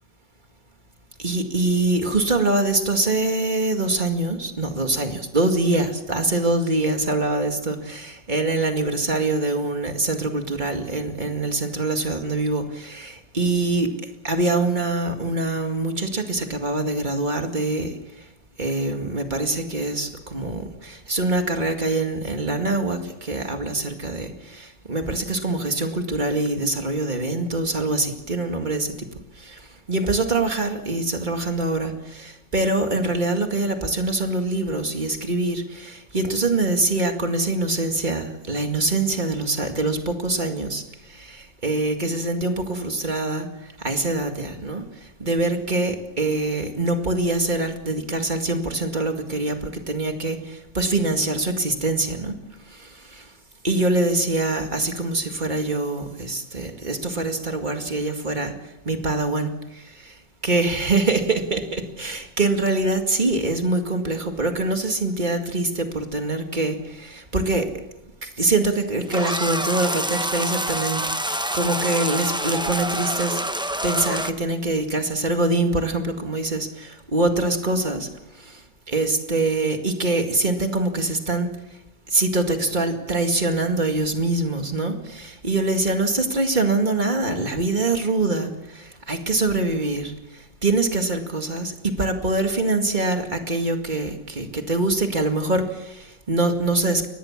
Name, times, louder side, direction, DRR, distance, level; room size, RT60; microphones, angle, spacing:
voice 1, 1.2-13.9 14.2-17.9 18.6-28.9 29.4-29.6 29.9-40.8 41.1-43.5 43.8-44.9 45.2-52.3 52.8-53.2 53.6-58.5 58.9-59.5 60.0-60.1 60.4-67.7 68.2-73.4 73.8-78.1 78.5-78.6 78.9-81.5 82.1-90.1 90.6-97.1, right 2 dB, 25° right, 5 dB, 2.2 m, -24 dB
sound 1, 69.1-74.3, right 1 dB, 5° right, 0.4 m, -26 dB
23.5 x 19.0 x 7.4 m, 0.93 s
omnidirectional pair, 1.9 m